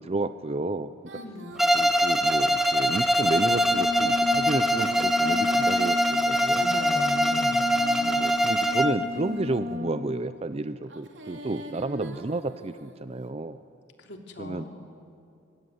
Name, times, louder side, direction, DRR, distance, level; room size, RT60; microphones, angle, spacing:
voice 1, 0.0-1.2 1.7-6.6 8.0-13.6 14.4-14.7, right 2 dB, 35° right, 12 dB, 0.6 m, -31 dB
Female singing, 1.0-3.2 4.3-6.6 7.4-9.5 10.8-13.0, equal, 80° right, 2.8 m, -44 dB
voice 2, 1.1-1.5 6.5-8.3 14.0-14.8, left 1 dB, 65° left, 2 dB, 3.3 m, -38 dB
Bowed string instrument, 1.6-9.1, equal, ahead, 1.1 m, -23 dB
Wind instrument woodwind instrument, 3.3-10.1, left 3 dB, 60° right, 3.8 m, -33 dB
24.0 x 23.5 x 9.5 m, 2.5 s
head